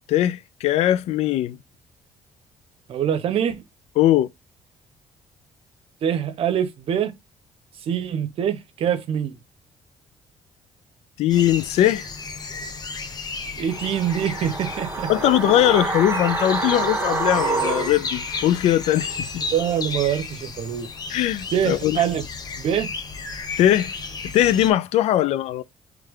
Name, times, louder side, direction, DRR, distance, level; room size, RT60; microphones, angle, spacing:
voice 1, 0.1-1.6 4.0-4.3 11.2-12.1 15.1-19.4 21.1-22.0 23.6-23.9 24.3-25.6, left 12 dB, 70° left, 0.4 m, -20 dB
voice 2, 2.9-3.6 6.0-7.1 7.9-9.3 13.6-15.1 19.5-20.9 21.5-22.2 22.6-22.9, right 9 dB, 60° right, 0.8 m, -24 dB
sound 1, 11.3-24.7, left 4 dB, 35° left, 1.0 m, -34 dB
sound 2, 13.7-18.8 19.1-19.2, right 3 dB, 20° right, 1.2 m, -27 dB
3.3 x 3.3 x 3.6 m
cardioid pair, 105°, 11 cm